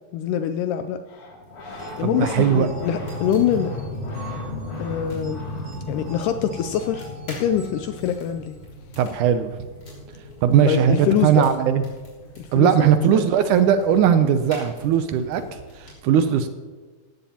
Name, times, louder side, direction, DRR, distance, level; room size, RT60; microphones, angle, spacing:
voice 1, 0.1-1.0 2.0-3.7 4.8-5.4 5.9-8.6 10.6-11.5 12.4-13.3, left 9 dB, 80° left, 9 dB, 2.0 m, -24 dB
sound 1, 1.1-11.5 13.6-13.7 13.8-15.6, left 1 dB, 60° left, 4.0 m, -36 dB
sound 2, 1.4-15.9, equal, 30° left, 4.0 m, -46 dB
sound 3, 1.8-8.6, right 2 dB, 35° right, 1.8 m, -45 dB
voice 2, 2.0-2.7 9.0-9.5 10.4-11.8 12.5-15.4 15.8-16.5, right 8 dB, 80° right, 10 dB, 1.9 m, -19 dB
17.5 x 14.5 x 2.9 m, 1.4 s
omnidirectional pair, 3.9 m